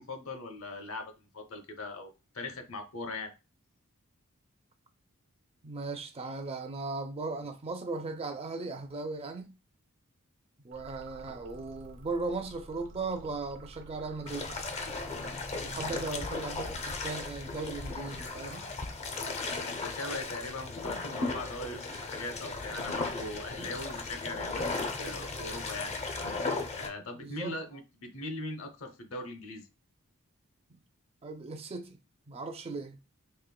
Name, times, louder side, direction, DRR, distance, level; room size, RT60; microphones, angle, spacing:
voice 1, 0.0-3.3 15.7-16.1 19.6-25.9 26.7-29.7, left 2 dB, 70° left, 0.7 m, -40 dB
voice 2, 5.6-9.5 10.6-14.5 15.5-18.7 23.6-23.8 27.1-27.6 30.7-30.8 31.2-32.0 32.3-33.0, right 3 dB, 25° right, 0.4 m, -37 dB
sound 1, 10.7-17.2, right 2 dB, 60° right, 1.1 m, -51 dB
sound 2, 14.3-26.9, left 3 dB, 30° left, 0.5 m, -36 dB
4.3 x 2.9 x 2.2 m
head